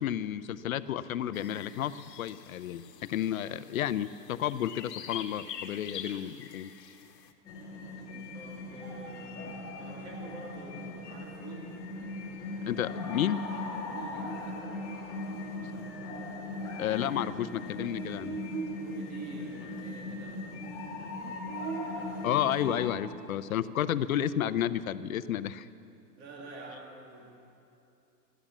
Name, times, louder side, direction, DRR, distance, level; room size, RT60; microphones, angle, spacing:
voice 1, 0.0-1.9 2.2-6.7 12.7-13.4 15.7-15.9 16.8-18.4 21.2-21.4 22.2-25.7, left 11 dB, 60° left, 13 dB, 0.6 m, -31 dB
sound 1, 1.3-7.3, left 8 dB, 75° left, 1.5 m, -45 dB
sound 2, 7.4-22.9, left 2 dB, 10° left, 1.9 m, -39 dB
voice 2, 8.1-11.9 13.9-14.3 18.8-20.6 21.8-22.3 26.2-27.4, right 3 dB, 40° right, 0 dB, 2.0 m, -46 dB
Buzz, 14.2-23.7, right 4 dB, 65° right, 2.6 m, -44 dB
14.5 x 11.5 x 7.2 m, 2.7 s
hypercardioid pair, 165°, 49 cm